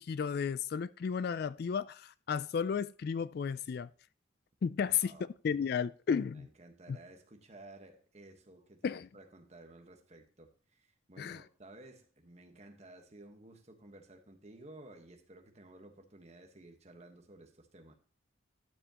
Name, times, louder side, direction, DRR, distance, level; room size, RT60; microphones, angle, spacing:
voice 1, 0.0-3.9 4.6-5.1 5.4-6.5 6.9-7.0 8.8-9.1 11.2-11.4, left 6 dB, 55° left, 0.3 m, -33 dB
voice 2, 4.8-5.3 6.3-18.0, right 2 dB, 35° right, 1.3 m, -55 dB
12.0 x 7.1 x 3.0 m
head